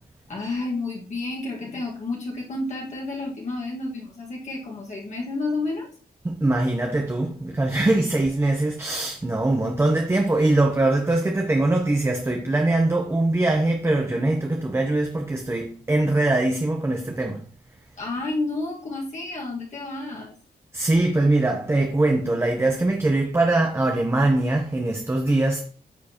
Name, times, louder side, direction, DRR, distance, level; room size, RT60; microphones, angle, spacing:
voice 1, 0.3-5.9 18.0-20.4, left 2 dB, 45° left, 1.7 m, -30 dB
voice 2, 6.2-17.4 20.7-25.7, right 2 dB, 15° right, 0.7 m, -22 dB
9.7 x 6.9 x 2.9 m
wide cardioid pair, 170°, 16 cm